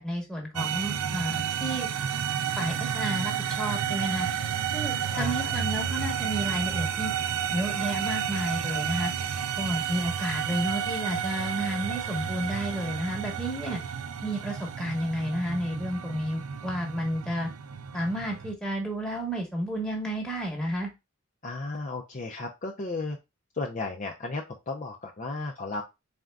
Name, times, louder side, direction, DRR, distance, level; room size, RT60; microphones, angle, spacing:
voice 1, 0.0-1.9 2.6-4.3 4.7-7.1 7.5-9.1 9.6-13.8 14.2-17.5 17.9-20.9, equal, 5° left, -1 dB, 1.1 m, -31 dB
sound 1, 0.6-18.5, right 8 dB, 85° right, 0.4 m, -31 dB
voice 2, 5.1-5.5 21.4-23.2 23.5-25.8, left 3 dB, 35° left, 1 dB, 0.5 m, -34 dB
4.2 x 3.7 x 2.3 m, 0.23 s
head